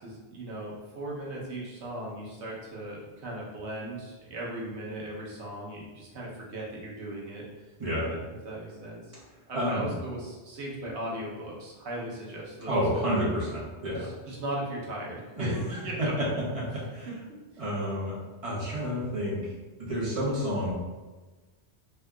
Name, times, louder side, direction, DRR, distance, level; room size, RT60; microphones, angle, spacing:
voice 1, 0.0-7.4 8.0-8.2 8.4-9.0 9.5-12.8 13.1-13.4 13.9-16.1 16.7-17.4, right 1 dB, 80° right, -4 dB, 1.1 m, -38 dB
voice 2, 9.5-9.9 12.7-14.1 15.4-15.5 16.0-16.1 16.5-16.6 16.9-17.1 17.6-18.1 18.4-19.4 19.8-20.7, equal, 35° right, -7 dB, 0.8 m, -29 dB
3.4 x 2.7 x 2.3 m, 1.2 s
omnidirectional pair, 1.2 m